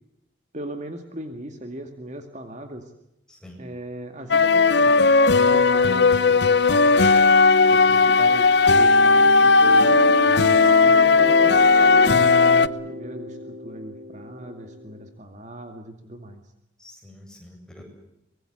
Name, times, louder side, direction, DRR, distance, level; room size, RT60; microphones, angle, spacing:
voice 1, 0.5-2.9 3.6-5.1 5.3-7.1 7.7-10.2 10.8-16.4, right 1 dB, 40° right, 5 dB, 2.3 m, -38 dB
voice 2, 3.3-3.6 10.2-10.6 16.8-17.8, left 1 dB, 5° left, 1 dB, 7.9 m, -46 dB
sound 1, 4.3-12.7, left 4 dB, 65° left, 0.8 m, -16 dB
sound 2, 9.6-15.1, equal, 65° right, 3.1 m, -32 dB
24.5 x 22.0 x 7.9 m, 0.83 s
head